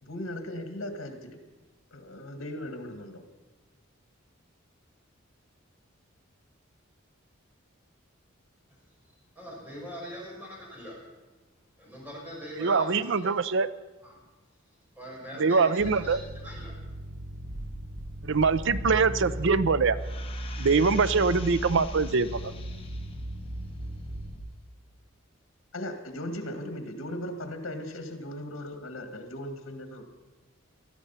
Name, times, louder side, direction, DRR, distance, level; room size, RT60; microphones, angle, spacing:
voice 1, 0.0-1.4 1.9-3.2 25.7-30.1, left 1 dB, 80° left, 6 dB, 1.9 m, -38 dB
voice 2, 9.4-11.0 11.8-13.3 14.0-14.2 15.0-16.7, equal, 10° right, -4 dB, 5.9 m, -41 dB
voice 3, 12.6-13.7 15.4-16.2 18.3-20.0 20.6-22.4, right 4 dB, 65° right, 15 dB, 0.6 m, -23 dB
sound 1, 15.8-24.4, right 1 dB, 45° right, 4.9 m, -37 dB
sound 2, 20.0-23.4 23.8-23.9, left 5 dB, 30° left, 1.6 m, -46 dB
19.0 x 13.0 x 5.7 m, 1.2 s
head